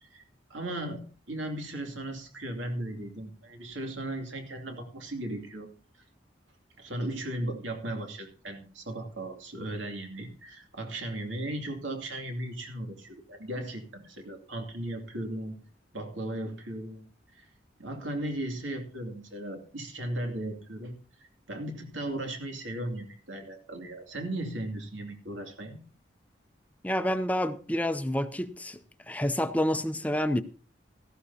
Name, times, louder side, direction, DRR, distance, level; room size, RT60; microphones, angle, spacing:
voice 1, 0.5-5.7 6.8-15.5 15.9-17.5 17.8-20.9 21.2-25.8, right 1 dB, 90° right, 2.7 m, -36 dB
voice 2, 26.8-28.8 29.1-30.4, left 1 dB, 10° left, 0.5 m, -28 dB
17.5 x 13.5 x 2.8 m
head